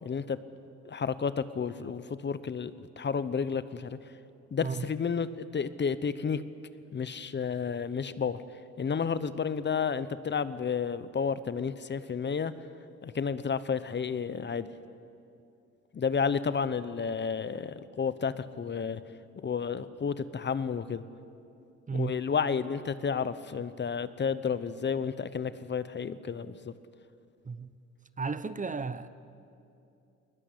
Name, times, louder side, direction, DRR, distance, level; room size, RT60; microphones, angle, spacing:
voice 1, 0.0-0.4 0.8-4.0 4.5-6.4 6.9-8.4 8.8-12.5 13.0-14.7 15.9-19.0 19.4-21.0 21.9-26.7, left 6 dB, 35° left, 1.0 m, -31 dB
voice 2, 21.9-22.2 27.5-27.7 28.2-29.1, right 5 dB, 25° right, 0.9 m, -33 dB
20.5 x 20.0 x 9.8 m
cardioid pair, 90°, 30 cm